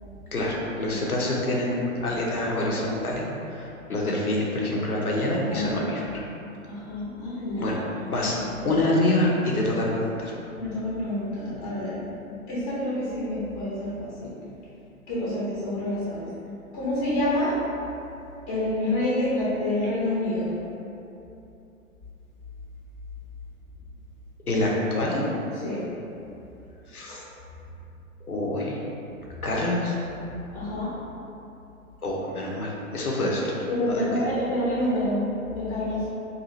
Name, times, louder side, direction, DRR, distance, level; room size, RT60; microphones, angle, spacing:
voice 1, 0.3-6.2 7.6-10.3 24.5-25.3 26.9-27.2 28.2-28.8 29.4-30.0 32.0-34.3, left 1 dB, 90° left, -3 dB, 0.6 m, -26 dB
voice 2, 6.6-7.8 8.1-8.3 8.6-8.8 10.6-12.0 12.5-14.3 15.1-16.3 16.7-17.6 18.5-20.6 25.5-25.8 30.5-30.9 33.7-36.1, left 1 dB, 25° left, -9 dB, 0.5 m, -28 dB
2.5 x 2.4 x 2.9 m, 2.8 s
figure-of-eight pair, 115°, 43 cm